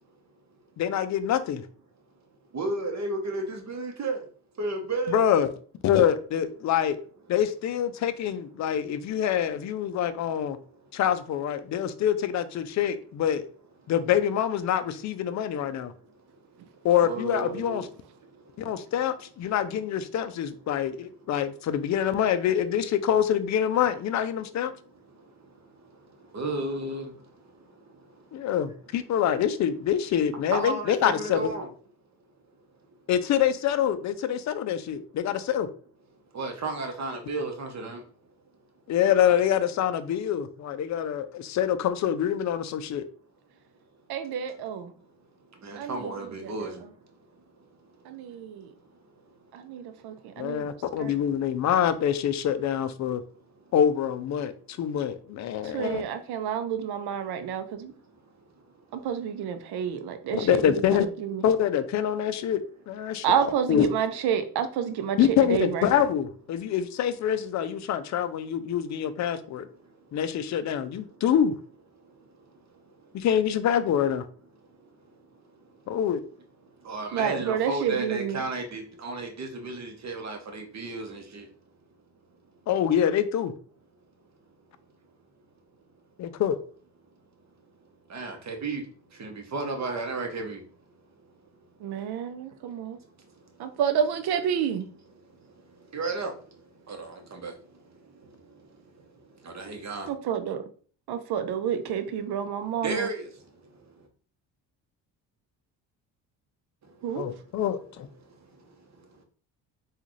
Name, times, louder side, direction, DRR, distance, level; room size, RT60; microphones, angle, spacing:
voice 1, 0.8-1.6 5.1-5.5 5.8-7.0 7.3-10.6 10.9-13.5 13.9-15.9 16.8-17.9 18.6-24.7 28.3-31.5 33.1-35.7 38.9-43.0 50.4-53.2 53.7-56.0 60.3-61.1 61.4-63.9 65.2-69.7 70.1-71.5 73.1-74.3 75.9-76.2 82.7-83.5 86.2-86.6 107.2-108.1, left 9 dB, 40° left, 0.4 m, -25 dB
voice 2, 2.5-4.2 4.6-5.2 17.0-17.9 26.3-27.1 30.5-31.7 36.3-38.0 45.6-46.7 76.9-81.4 88.1-88.8 89.2-90.6 95.9-96.3 96.9-97.5 99.5-100.1 102.8-103.3, right 3 dB, 40° right, 1.0 m, -32 dB
voice 3, 44.1-44.9 45.8-46.1 46.4-46.7 48.1-48.7 49.5-50.7 51.0-51.1 55.7-57.9 58.9-60.6 61.2-61.4 63.2-65.2 65.5-65.9 77.1-78.4 91.8-93.0 93.6-94.9 100.1-100.6 101.1-103.1 107.0-107.3, right 8 dB, 60° right, 0.6 m, -29 dB
3.7 x 2.5 x 3.1 m
supercardioid pair, 70°, 44 cm